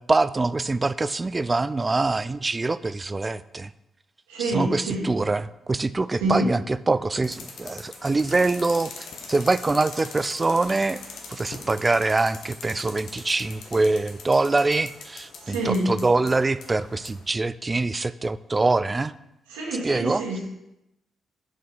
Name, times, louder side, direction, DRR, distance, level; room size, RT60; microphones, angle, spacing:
voice 1, 0.0-3.7 4.4-11.0 11.3-19.1 19.8-20.2, right 3 dB, 30° right, 16 dB, 0.3 m, -24 dB
voice 2, 4.3-5.1 6.2-6.5 15.4-15.9 19.5-20.4, right 1 dB, 85° right, -2 dB, 1.5 m, -26 dB
sound 1, 7.2-17.2, left 4 dB, 70° left, 1.0 m, -42 dB
6.4 x 5.4 x 4.0 m, 0.88 s
hypercardioid pair, 40°, 0 cm